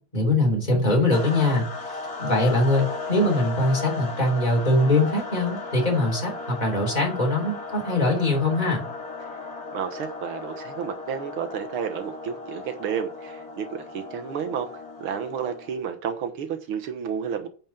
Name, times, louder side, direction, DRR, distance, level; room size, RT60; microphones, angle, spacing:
voice 1, 0.1-8.8, left 2 dB, 20° left, 3.5 m, -22 dB
sound 1, 1.1-15.9, left 3 dB, 45° left, 2.5 m, -36 dB
voice 2, 9.7-14.7 15.0-17.5, right 7 dB, 85° right, 2.0 m, -31 dB
9.0 x 5.3 x 7.2 m
omnidirectional pair, 2.3 m